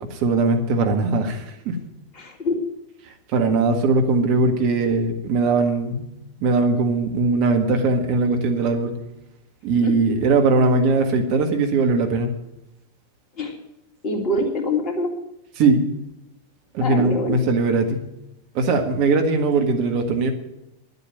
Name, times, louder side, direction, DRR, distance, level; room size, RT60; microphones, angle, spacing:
voice 1, 0.2-1.8 3.0-6.1 6.4-8.9 9.6-12.3 15.5-15.8 16.7-18.0 18.5-20.3, right 3 dB, 45° right, 4 dB, 1.7 m, -20 dB
voice 2, 2.1-2.6 9.8-9.9 13.4-13.5 14.0-15.1 16.8-17.4, left 2 dB, 35° left, 2 dB, 3.0 m, -24 dB
11.0 x 8.1 x 9.3 m, 0.87 s
figure-of-eight pair, 90°, 0 cm